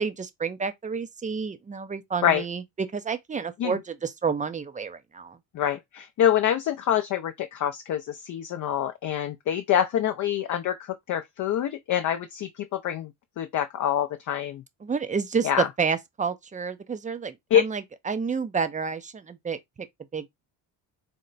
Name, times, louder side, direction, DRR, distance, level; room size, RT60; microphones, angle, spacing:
voice 1, 0.0-5.4 14.8-19.9 20.1-20.3, right 5 dB, 15° right, 0.5 m, -30 dB
voice 2, 5.5-13.1 13.4-14.6 15.4-15.7 17.5-17.6, left 10 dB, 40° left, 0.5 m, -26 dB
4.3 x 2.1 x 3.9 m
supercardioid pair, 90°, 49 cm